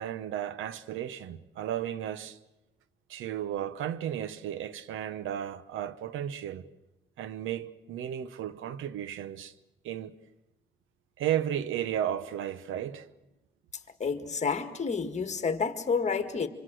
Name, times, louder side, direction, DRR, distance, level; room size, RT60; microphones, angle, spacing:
voice 1, 0.0-2.4 3.1-6.7 7.2-9.5 9.8-10.1 11.2-13.1, right 10 dB, 80° right, 1.0 m, -34 dB
voice 2, 14.0-16.5, left 5 dB, 35° left, 2.0 m, -29 dB
25.5 x 25.0 x 6.4 m
cardioid pair, 90°, 20 cm